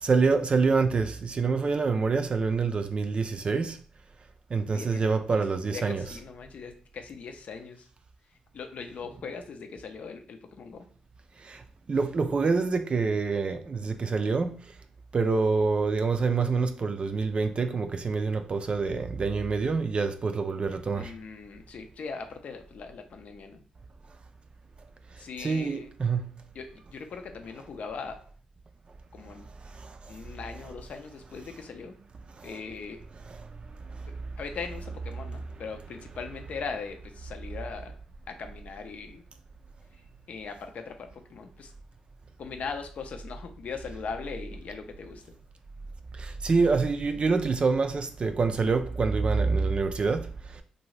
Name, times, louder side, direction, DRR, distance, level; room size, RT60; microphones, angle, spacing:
voice 1, 0.0-3.8 4.5-6.0 11.4-14.7 15.1-21.1 25.1-26.3 29.6-30.1 32.4-32.5 33.7-34.1 46.1-50.6, right 4 dB, 45° right, 0.4 m, -26 dB
voice 2, 4.7-7.9 8.3-10.9 20.9-23.6 25.2-25.9 26.5-28.2 29.1-29.5 30.1-32.0 32.4-33.0 34.1-37.9 38.3-39.2 40.3-41.7 42.4-45.3, left 5 dB, 65° left, 0.5 m, -40 dB
2.7 x 2.5 x 3.1 m
supercardioid pair, 50°, 3 cm